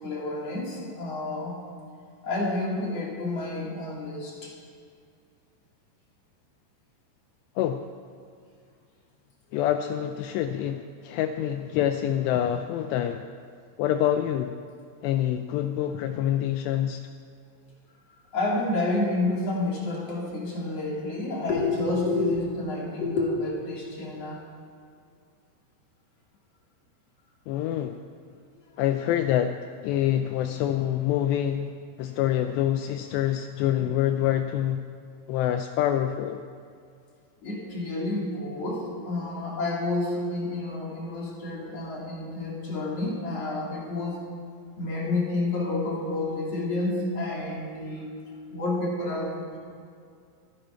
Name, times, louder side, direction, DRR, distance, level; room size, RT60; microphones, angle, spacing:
voice 1, 0.0-1.6 2.2-4.5 18.3-24.4 37.4-44.2 44.8-48.1 48.5-49.6, left 2 dB, 40° left, -4 dB, 2.9 m, -29 dB
voice 2, 9.5-13.3 13.8-14.6 15.0-17.0 27.5-28.0 28.8-31.7 32.0-34.9 35.3-36.4, left 11 dB, 90° left, 7 dB, 2.4 m, -26 dB
24.5 x 10.5 x 4.5 m, 2.3 s
omnidirectional pair, 5.6 m